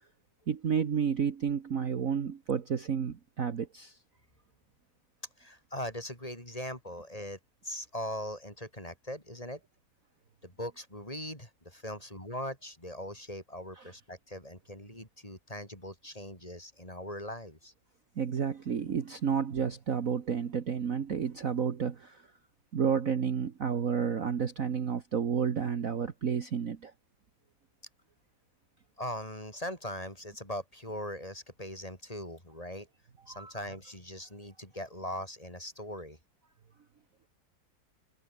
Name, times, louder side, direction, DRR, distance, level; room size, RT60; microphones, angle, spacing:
voice 1, 0.5-4.0 13.8-13.9 18.2-22.2 22.7-26.9 33.3-33.5, right 7 dB, 45° right, 1.6 m, -31 dB
voice 2, 5.4-9.6 10.4-17.7 29.0-32.9 33.3-36.2, left 1 dB, 20° left, 6.8 m, -40 dB
omnidirectional pair, 2.1 m